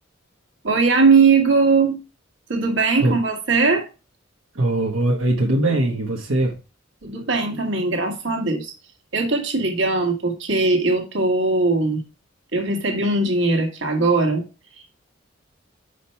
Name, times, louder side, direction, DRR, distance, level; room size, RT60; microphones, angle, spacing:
voice 1, 0.6-2.0 2.5-3.9 7.0-8.7 9.1-12.0 12.5-14.4, right 3 dB, 65° right, 1.8 m, -19 dB
voice 2, 4.5-6.6, right 2 dB, 85° right, 1.2 m, -21 dB
5.7 x 5.0 x 5.5 m
head